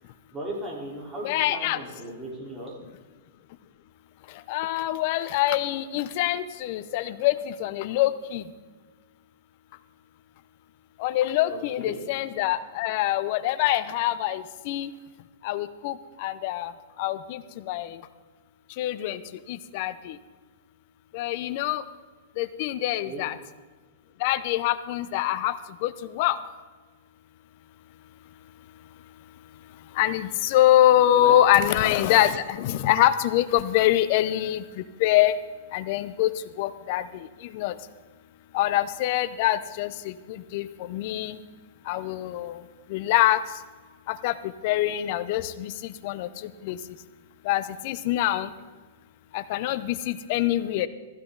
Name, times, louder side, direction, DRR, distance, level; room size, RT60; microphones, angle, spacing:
voice 1, 0.3-2.8 11.5-12.0 23.0-23.3 31.2-31.4, right 1 dB, 10° right, -4 dB, 4.2 m, -37 dB
voice 2, 1.2-1.8 4.5-8.4 11.0-14.9 15.4-16.7 17.0-17.4 17.7-18.0 18.8-19.2 19.5-20.2 21.1-21.8 22.4-23.3 24.2-25.5 25.8-26.4 30.0-34.6 35.0-35.3 35.7-36.3 36.6-37.2 37.5-37.7 38.5-41.4 41.9-42.6 42.9-43.4 44.1-44.3 44.6-46.8 47.5-48.5 49.3-50.9, left 13 dB, 50° left, 14 dB, 0.8 m, -24 dB
15.5 x 15.5 x 4.0 m, 1.4 s
hypercardioid pair, 145°, 0 cm